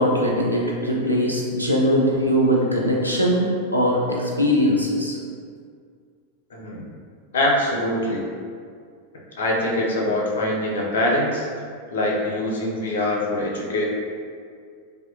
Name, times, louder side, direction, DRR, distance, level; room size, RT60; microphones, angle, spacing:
voice 1, 0.0-5.2, equal, 90° right, -3 dB, 0.4 m, -21 dB
voice 2, 6.5-6.9 7.3-8.3 9.4-11.5 11.9-13.9, left 1 dB, 65° left, -2 dB, 0.5 m, -23 dB
2.6 x 2.1 x 2.8 m, 2.2 s
figure-of-eight pair, 90°, 0 cm